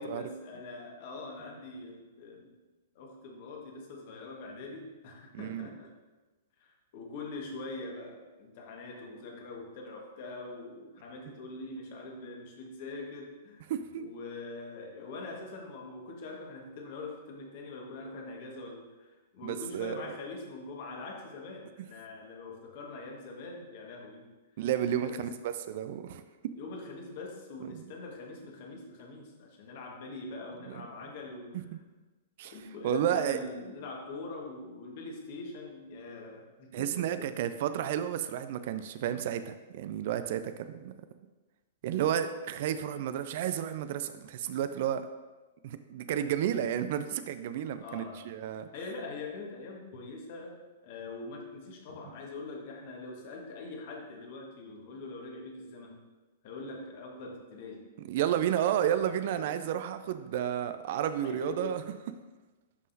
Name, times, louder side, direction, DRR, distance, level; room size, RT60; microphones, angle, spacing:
voice 1, 0.0-2.5 2.9-5.9 6.6-13.7 14.0-24.3 24.9-25.3 26.5-31.6 32.5-37.3 47.8-48.3 48.7-56.0 56.4-57.9 61.2-61.8, left 3 dB, 50° left, 0 dB, 1.6 m, -43 dB
voice 2, 5.3-5.7 13.7-14.1 19.4-20.0 24.6-26.2 27.7-27.9 30.7-30.8 31.7-31.8 32.4-32.5 32.8-33.4 36.7-40.9 41.8-45.1 45.6-48.7 58.1-61.8, right 10 dB, 50° right, 11 dB, 0.4 m, -31 dB
11.0 x 5.5 x 2.7 m, 1.2 s
figure-of-eight pair, 105°, 0 cm